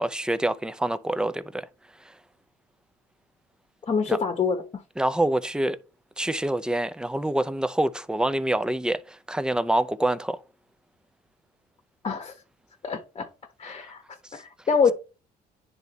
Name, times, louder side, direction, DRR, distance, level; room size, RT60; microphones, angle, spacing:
voice 1, 0.0-1.7 2.0-2.2 4.1-4.2 5.0-5.8 6.2-10.4, right 1 dB, 5° right, 0.5 m, -26 dB
voice 2, 3.9-4.8 12.0-12.3 12.8-13.3 13.6-14.9, left 5 dB, 30° left, 1.0 m, -26 dB
9.9 x 3.5 x 4.0 m
cardioid pair, 110°, 17 cm